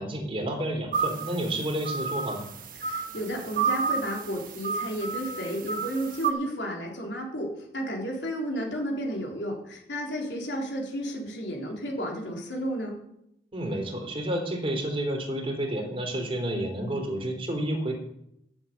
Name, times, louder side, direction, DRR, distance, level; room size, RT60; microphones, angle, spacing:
voice 1, 0.0-2.5 13.5-17.9, right 1 dB, 30° right, 2 dB, 3.1 m, -30 dB
sound 1, 0.9-6.3, right 5 dB, 50° right, 1.3 m, -31 dB
voice 2, 2.8-13.0, equal, 70° left, 0 dB, 3.9 m, -32 dB
11.5 x 7.5 x 8.4 m, 0.78 s
head